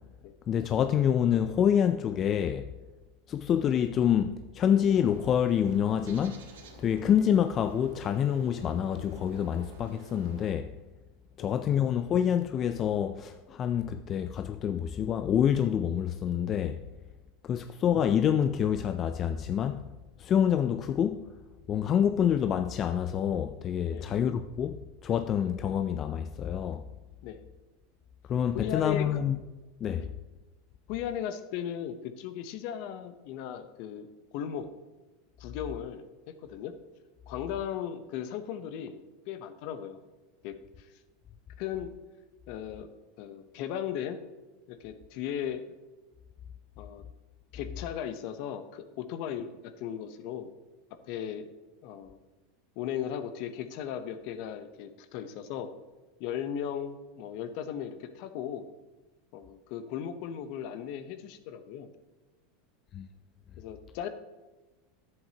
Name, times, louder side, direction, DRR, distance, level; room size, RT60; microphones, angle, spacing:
voice 1, 0.5-2.7 3.3-6.5 6.8-10.7 11.4-16.8 17.4-19.9 20.2-21.3 21.7-26.8 28.3-29.4 29.8-30.1 62.9-63.1, left 9 dB, 35° left, 0.3 m, -27 dB
Bird, 4.6-10.6, right 5 dB, 85° right, 1.2 m, -51 dB
voice 2, 28.5-29.2 30.0-30.1 30.9-34.1 34.3-34.7 35.4-36.7 37.3-39.0 39.3-40.0 40.4-40.9 41.6-41.9 42.5-42.9 43.2-44.2 44.7-45.6 46.8-47.0 47.5-50.5 51.1-51.5 51.8-52.2 52.8-55.7 56.2-58.7 59.3-61.9 63.6-64.1, left 9 dB, 60° left, 0.8 m, -37 dB
10.5 x 7.8 x 2.9 m
supercardioid pair, 110°, 0 cm